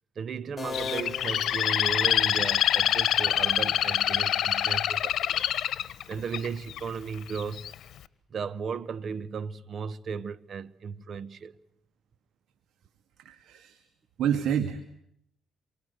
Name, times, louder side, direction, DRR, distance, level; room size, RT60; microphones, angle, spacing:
voice 1, 0.0-5.5 6.1-7.7 8.3-11.6, right 6 dB, 55° right, 1.1 m, -35 dB
sound 1, 0.6-2.5, left 4 dB, 25° left, 2.8 m, -38 dB
Bird, 0.7-6.8 7.4-7.7, left 11 dB, 70° left, 1.3 m, -26 dB
voice 2, 13.2-13.9 14.2-14.8, right 9 dB, 80° right, 2.0 m, -28 dB
27.5 x 24.5 x 8.0 m
cardioid pair, 90°, 0 cm